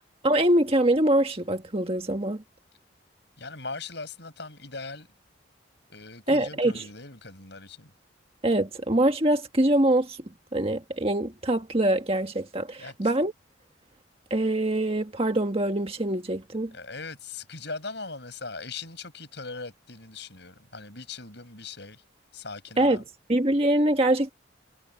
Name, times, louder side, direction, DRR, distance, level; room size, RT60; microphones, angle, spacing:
voice 1, 0.2-2.4 6.3-6.8 8.4-10.2 10.5-13.3 14.3-16.7 22.8-23.0 23.3-24.3, right 1 dB, 30° right, 1.6 m, -24 dB
voice 2, 3.4-5.1 5.9-7.9 12.8-13.1 16.7-22.0 22.3-23.0, left 4 dB, 60° left, 8.0 m, -40 dB
head